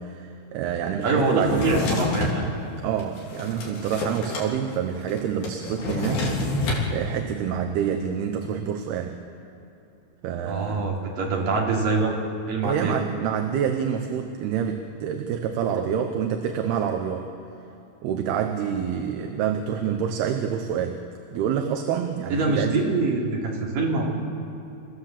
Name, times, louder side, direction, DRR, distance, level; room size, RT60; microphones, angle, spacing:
voice 1, 0.0-1.7 2.8-6.3 6.9-9.2 10.2-10.9 12.6-17.3 18.0-21.0 21.3-22.8, right 8 dB, 75° right, 5 dB, 2.9 m, -27 dB
voice 2, 1.0-2.5 10.5-12.1 12.5-13.0 22.3-24.1, right 3 dB, 55° right, -2 dB, 4.6 m, -24 dB
Drawer open or close, 1.4-2.4 3.0-4.5 4.7-4.8 5.1-6.9, left 2 dB, 80° left, 5.4 m, -27 dB
29.5 x 15.0 x 7.4 m, 2.9 s
omnidirectional pair, 4.8 m